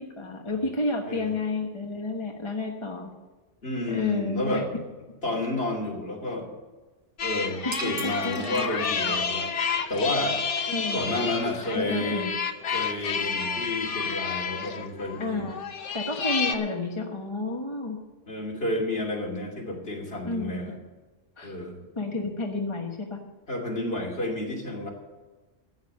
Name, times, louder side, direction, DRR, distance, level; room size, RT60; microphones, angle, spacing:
voice 1, 0.0-3.1 3.9-4.6 7.6-9.2 10.7-11.0 11.7-12.3 15.2-18.0 20.2-20.7 21.4-21.5 22.0-23.2, left 2 dB, 25° left, 1 dB, 1.3 m, -31 dB
voice 2, 3.6-4.6 5.2-6.5 7.2-9.5 9.9-10.4 10.9-12.3 12.7-15.4 18.3-20.8 21.4-21.8 23.5-24.9, left 1 dB, 55° left, -1 dB, 3.0 m, -30 dB
sound 1, 7.2-16.5, left 5 dB, 75° left, 1.3 m, -30 dB
sound 2, 7.7-9.2, right 6 dB, 85° right, 1.4 m, -40 dB
13.5 x 9.2 x 6.5 m, 1.2 s
omnidirectional pair, 1.3 m